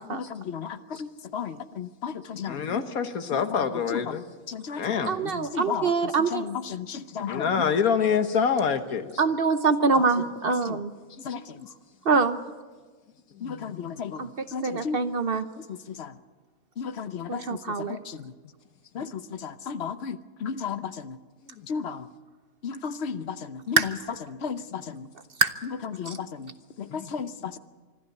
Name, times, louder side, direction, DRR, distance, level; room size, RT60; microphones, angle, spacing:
voice 1, 0.1-2.8 3.3-3.6 3.9-4.1 4.5-4.8 5.2-5.9 6.3-7.6 10.0-10.1 10.7-10.8 11.2-11.6 13.4-15.0 15.9-16.1 16.8-18.3 18.9-21.2 21.7-22.1 22.6-23.8 24.3-25.1 25.9-27.6, left 6 dB, 55° left, 12 dB, 1.0 m, -34 dB
voice 2, 2.5-4.3 4.8-5.2 7.3-9.1 11.3-11.7 13.4-13.8 19.0-19.1 21.6-21.7 26.9-27.1, left 6 dB, 90° left, 9 dB, 1.7 m, -27 dB
voice 3, 5.1-6.5 9.2-10.9 12.0-12.4 14.2-15.5 17.3-18.0 23.8-23.9 25.4-25.5 26.1-26.2, right 4 dB, 50° right, 10 dB, 0.9 m, -24 dB
25.0 x 13.0 x 9.2 m, 1.4 s
omnidirectional pair, 1.5 m